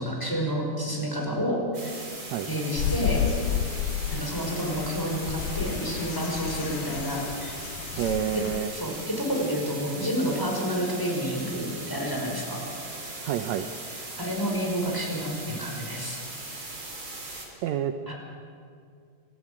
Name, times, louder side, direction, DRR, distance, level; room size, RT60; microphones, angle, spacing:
voice 1, 0.0-2.0 2.5-3.2 4.1-7.6 8.3-8.4 8.7-12.6 14.2-16.2 18.1-18.2, equal, 5° left, -1 dB, 5.1 m, -29 dB
sound 1, 1.7-17.5, right 2 dB, 35° right, 4.7 m, -39 dB
sound 2, 2.8-8.6, left 10 dB, 80° left, 1.7 m, -31 dB
voice 2, 8.0-8.7 13.2-13.7 17.6-18.1, right 10 dB, 75° right, 9 dB, 1.7 m, -28 dB
28.5 x 14.5 x 8.8 m, 2.3 s
omnidirectional pair, 4.1 m